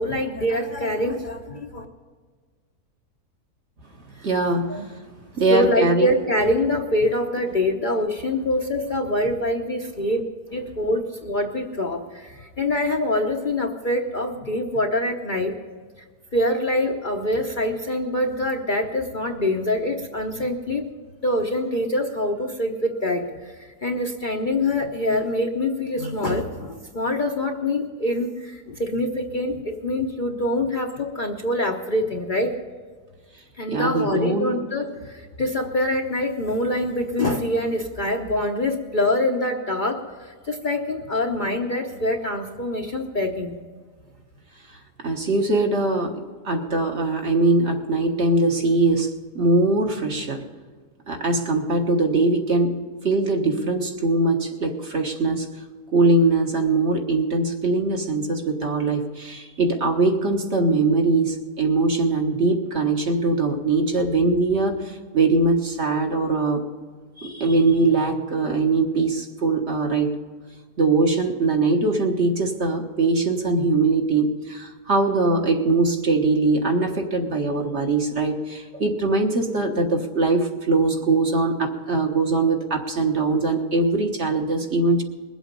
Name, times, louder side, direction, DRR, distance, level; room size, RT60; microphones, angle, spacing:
voice 1, 0.0-1.8 4.7-4.8 5.5-15.5 16.3-20.8 21.2-32.5 33.5-43.6, left 1 dB, 35° left, 2 dB, 0.9 m, -25 dB
voice 2, 4.2-4.9 5.4-6.1 33.7-34.5 45.0-46.2 46.4-50.4 51.1-55.5 55.9-66.6 67.2-70.2 70.8-85.0, right 3 dB, 45° right, 3 dB, 1.6 m, -21 dB
21.0 x 8.2 x 5.4 m, 1.5 s
omnidirectional pair, 1.6 m